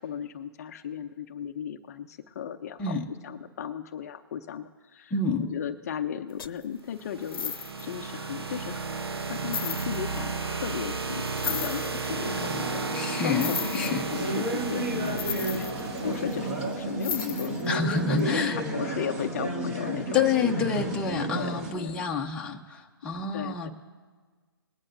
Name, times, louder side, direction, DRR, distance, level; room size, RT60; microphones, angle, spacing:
voice 1, 0.0-3.0 3.2-5.1 5.5-7.5 7.8-8.9 9.3-17.6 17.9-20.3 21.1-22.1 23.0-23.7, left 8 dB, 40° left, 8 dB, 0.6 m, -36 dB
voice 2, 5.1-5.5 12.9-14.1 17.7-18.6 20.1-23.7, left 4 dB, 5° left, -1 dB, 0.8 m, -28 dB
sound 1, 6.4-6.6 7.2-7.9 8.7-8.8 9.4-10.2 11.2-12.1 13.4-14.2 15.0-16.3 17.0-17.7 18.2-18.3, left 7 dB, 65° left, 0.8 m, -34 dB
sound 2, 6.9-16.8, right 4 dB, 85° right, 0.9 m, -34 dB
sound 3, 12.0-21.7, right 1 dB, 30° right, 2.2 m, -32 dB
21.0 x 9.7 x 2.7 m, 1.5 s
hypercardioid pair, 150°, 13 cm